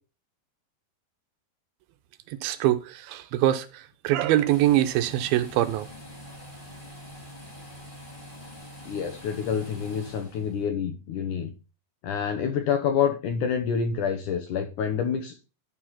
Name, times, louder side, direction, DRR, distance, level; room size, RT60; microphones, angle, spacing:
voice 1, 2.3-5.9, right 13 dB, 80° right, 2.4 m, -24 dB
sound 1, 4.5-10.7, equal, 15° left, 2.1 m, -44 dB
voice 2, 8.9-11.5 12.0-15.3, left 7 dB, 70° left, 2.1 m, -27 dB
11.5 x 4.8 x 5.7 m
omnidirectional pair, 4.7 m